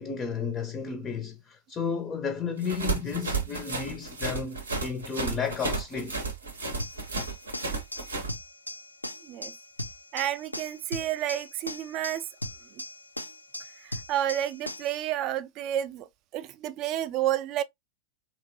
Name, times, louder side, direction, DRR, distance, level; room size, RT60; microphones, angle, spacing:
voice 1, 0.0-6.2, left 5 dB, 25° left, 0.5 m, -33 dB
sound 1, 2.6-8.3, right 3 dB, 75° right, 0.7 m, -32 dB
sound 2, 6.8-15.0, left 1 dB, 85° left, 0.4 m, -39 dB
voice 2, 9.2-9.5 10.1-12.2 12.7-12.8 13.8-16.1 16.3-17.6, right 12 dB, 40° right, 0.4 m, -30 dB
3.0 x 2.8 x 2.6 m
figure-of-eight pair, 90°, 0 cm